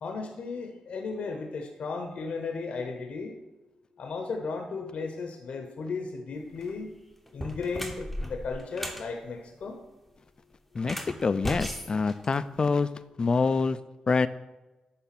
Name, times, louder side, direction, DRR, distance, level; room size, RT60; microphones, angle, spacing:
voice 1, 0.0-3.4 4.0-6.9 7.3-9.8, left 4 dB, 70° left, 4 dB, 0.9 m, -35 dB
sound 1, 6.5-6.7 7.3-9.1 10.8-12.8, left 1 dB, ahead, 0.9 m, -36 dB
voice 2, 11.2-12.9 13.2-13.8 14.1-14.3, left 4 dB, 40° left, 13 dB, 0.4 m, -25 dB
10.0 x 3.4 x 5.9 m, 1.1 s
cardioid pair, 90°, 2 cm